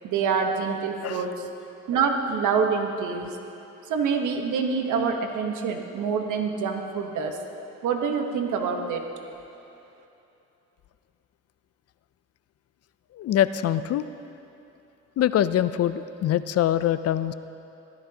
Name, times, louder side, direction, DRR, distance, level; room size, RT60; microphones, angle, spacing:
voice 1, 0.0-1.5 1.9-3.4 3.8-7.4 7.8-9.1, right 5 dB, 80° right, 4 dB, 1.1 m, -26 dB
voice 2, 13.1-14.0 15.2-17.3, left 11 dB, 55° left, 14 dB, 0.4 m, -24 dB
15.5 x 13.0 x 2.8 m, 2.8 s
cardioid pair, 90°, 30 cm